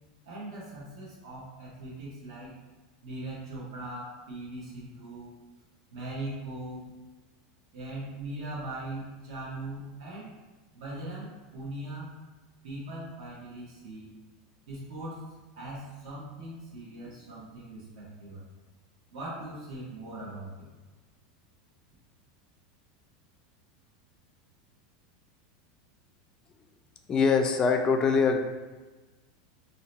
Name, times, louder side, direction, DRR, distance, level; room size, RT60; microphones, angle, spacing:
voice 1, 0.2-2.5 3.0-5.4 5.9-6.9 7.7-10.3 10.7-12.1 12.6-14.1 14.7-15.3 15.5-18.4 19.1-20.7, right 1 dB, 85° right, -8 dB, 0.9 m, -40 dB
voice 2, 27.1-28.4, left 5 dB, 20° left, 4 dB, 0.3 m, -23 dB
2.8 x 2.1 x 4.0 m, 1.2 s
supercardioid pair, 150°, 3 cm